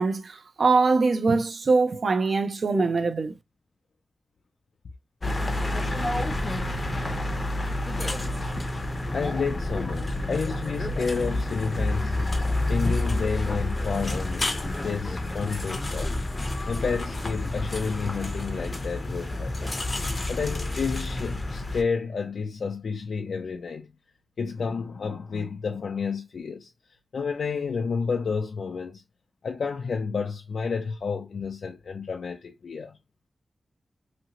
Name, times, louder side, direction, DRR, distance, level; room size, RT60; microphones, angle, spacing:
voice 1, 0.0-3.4, right 4 dB, 60° right, 0.4 m, -23 dB
sound 1, 5.2-21.8, left 1 dB, 30° left, 0.5 m, -29 dB
voice 2, 9.1-12.4 12.7-16.2 16.7-19.7 20.3-23.9 24.4-26.7 27.1-29.0 29.4-33.0, left 5 dB, 85° left, 0.4 m, -30 dB
2.8 x 2.5 x 2.8 m
wide cardioid pair, 140°, 0 cm